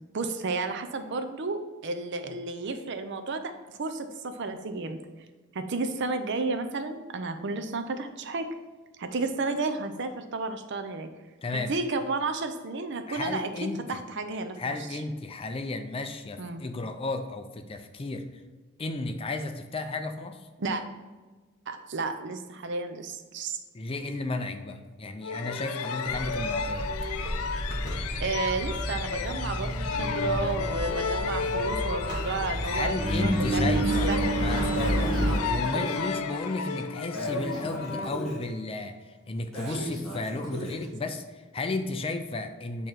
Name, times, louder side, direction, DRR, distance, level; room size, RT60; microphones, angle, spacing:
voice 1, 0.1-5.0 5.5-8.5 9.0-11.1 11.7-15.0 16.4-16.6 20.6-20.8 21.7-23.6 28.2-32.9 33.2-34.3 39.7-39.8, right 3 dB, 55° right, 8 dB, 0.5 m, -32 dB
voice 2, 11.4-11.7 13.1-14.0 14.6-18.3 18.8-20.5 23.7-26.9 32.6-42.9, left 2 dB, 25° left, 7 dB, 0.4 m, -33 dB
sound 1, 25.2-38.7, left 5 dB, 90° left, 0.4 m, -33 dB
Engine, 26.1-35.3, right 1 dB, 20° right, 1.4 m, -30 dB
Breathing, 34.7-36.1 37.1-38.4 39.5-40.9, right 1 dB, ahead, 1.5 m, -37 dB
8.5 x 3.0 x 4.6 m, 1.3 s
head